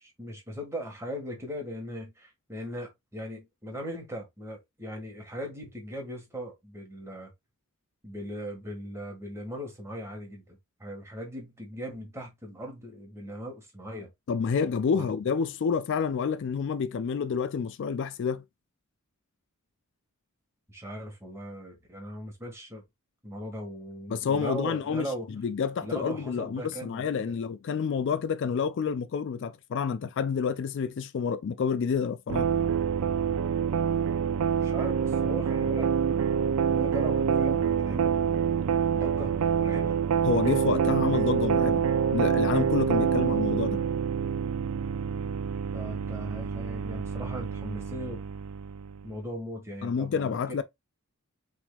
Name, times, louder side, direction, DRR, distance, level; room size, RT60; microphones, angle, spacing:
voice 1, 0.0-7.3 8.0-14.1 14.9-15.0 20.7-22.8 23.2-25.3 25.8-27.3 34.5-38.2 38.9-40.0 45.7-48.2 49.0-50.6, equal, 15° right, 1.6 m, -39 dB
voice 2, 14.3-18.4 24.1-32.5 40.2-41.8 42.1-43.8 49.8-50.6, left 6 dB, 55° left, 0.3 m, -29 dB
sound 1, 32.3-49.0, right 7 dB, 90° right, 0.4 m, -26 dB
5.9 x 3.5 x 2.3 m
head